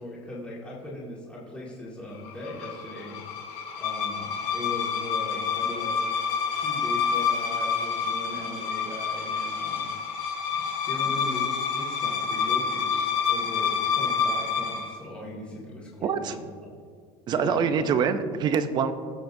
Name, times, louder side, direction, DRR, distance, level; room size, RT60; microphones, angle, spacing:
voice 1, 0.0-3.2 3.8-6.0 6.5-9.8 10.9-16.7 17.3-17.9, left 1 dB, 10° left, -7 dB, 1.9 m, -39 dB
sound 1, 2.2-14.9, left 6 dB, 80° left, 1.9 m, -28 dB
voice 2, 16.0-16.3 17.3-18.9, right 6 dB, 30° right, 10 dB, 0.5 m, -25 dB
20.5 x 7.2 x 2.6 m, 2.1 s
cardioid pair, 175°, 15 cm